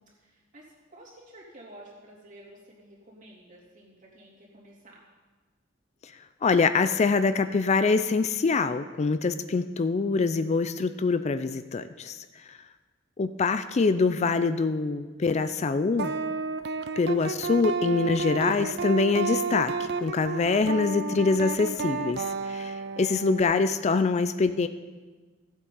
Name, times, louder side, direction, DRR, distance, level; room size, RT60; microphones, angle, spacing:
voice 1, 0.0-5.1, right 1 dB, 40° right, -4 dB, 3.1 m, -51 dB
voice 2, 6.4-12.6 13.2-16.1 17.0-24.7, left 4 dB, 35° left, 11 dB, 0.4 m, -25 dB
sound 1, 16.0-23.4, right 4 dB, 60° right, 0.5 m, -31 dB
14.5 x 8.2 x 5.5 m, 1.3 s
head